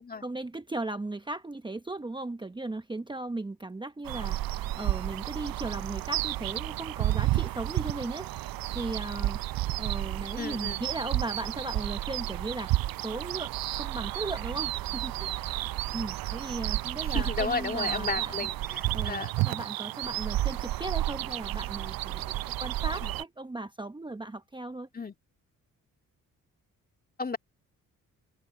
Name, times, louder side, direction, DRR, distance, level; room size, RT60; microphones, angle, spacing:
voice 1, 0.2-8.3 8.7-9.4 9.8-12.7 13.0-15.7 15.9-18.5 18.9-24.9, right 2 dB, 15° right, 1.0 m, -37 dB
sound 1, 4.0-23.2, right 15 dB, 75° right, 0.7 m, -31 dB
voice 2, 10.4-10.8 17.1-19.3 23.0-23.1 24.9-25.1 27.2-27.4, left 4 dB, 25° left, 2.1 m, -33 dB
cardioid pair, 75°, 35 cm